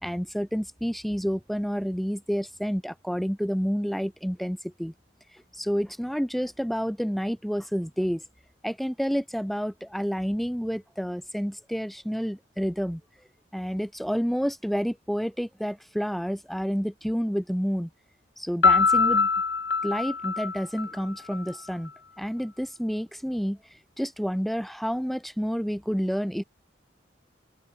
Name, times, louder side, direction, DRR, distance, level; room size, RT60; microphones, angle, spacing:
voice 1, 0.0-4.9 5.5-8.2 8.6-13.0 13.5-17.9 18.4-19.3 19.8-21.9 22.2-23.6 24.0-26.4, equal, ahead, 3.8 m, -29 dB
Piano, 18.6-21.4, left 5 dB, 75° left, 3.2 m, -23 dB
open air
head